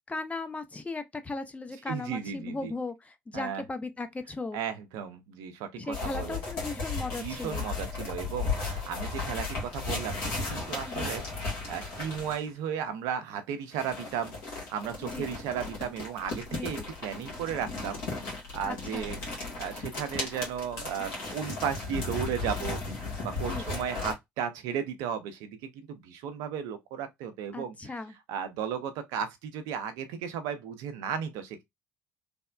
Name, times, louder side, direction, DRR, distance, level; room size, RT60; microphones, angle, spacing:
voice 1, 0.1-4.6 5.8-7.7 10.9-11.1 15.0-15.3 16.5-16.7 18.6-19.1 23.5-23.6 27.5-28.1, left 3 dB, 20° left, 0.6 m, -37 dB
voice 2, 1.9-2.7 3.3-3.6 4.5-6.4 7.2-11.2 11.7-19.2 19.6-22.8 23.2-27.9 28.3-31.6, right 8 dB, 70° right, 0.6 m, -35 dB
sound 1, 5.9-12.5 13.7-24.1, left 3 dB, 70° left, 1.5 m, -35 dB
3.4 x 2.1 x 2.4 m
hypercardioid pair, 55°, 7 cm